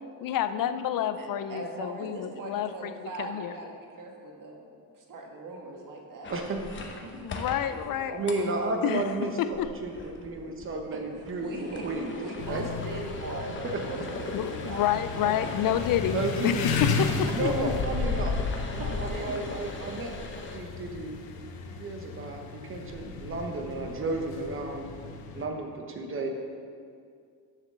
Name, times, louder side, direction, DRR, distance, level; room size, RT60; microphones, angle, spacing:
voice 1, 0.2-2.9 3.3-3.5 7.1-8.2 8.8-9.0 9.4-9.7 14.3-17.5, left 10 dB, 65° left, 11 dB, 0.5 m, -29 dB
voice 2, 1.2-6.3 7.0-7.1 10.9-11.8 12.2-15.5 17.2-17.3 18.5-19.3, right 2 dB, 60° right, 0 dB, 1.5 m, -40 dB
sound 1, 6.2-20.6, left 3 dB, 35° left, 0.8 m, -42 dB
voice 3, 8.1-12.2 12.5-12.7 13.6-13.8 16.1-16.7 17.3-20.1 20.5-21.2 21.6-24.8 25.3-26.3, right 2 dB, 35° right, 3 dB, 1.0 m, -33 dB
sound 2, 12.4-25.5, left 4 dB, 80° left, 0.9 m, -34 dB
7.2 x 6.0 x 6.8 m, 2.2 s
wide cardioid pair, 170°, 36 cm